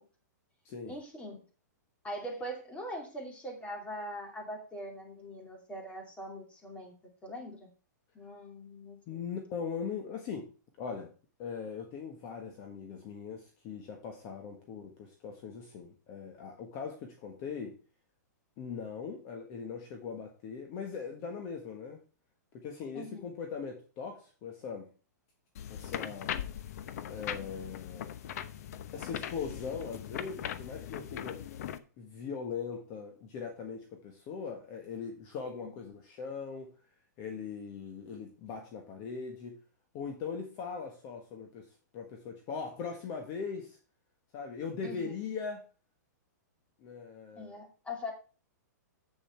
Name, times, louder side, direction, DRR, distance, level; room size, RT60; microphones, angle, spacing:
voice 1, 0.9-1.4 2.0-6.9 7.2-7.7 8.1-9.2 22.9-23.3 35.6-35.7 44.8-45.2 47.4-48.1, equal, 10° left, 1 dB, 2.7 m, -42 dB
voice 2, 9.1-10.5 10.8-11.1 11.4-17.8 18.6-22.0 22.5-24.9 25.7-26.3 27.1-28.1 28.9-31.4 32.0-36.7 37.2-39.6 39.9-43.8 44.3-45.6 46.8-47.6, left 6 dB, 35° left, 4 dB, 1.5 m, -40 dB
sound 1, 25.5-31.8, left 10 dB, 60° left, 0.9 m, -40 dB
8.1 x 7.1 x 4.5 m, 0.35 s
hypercardioid pair, 145°, 10 cm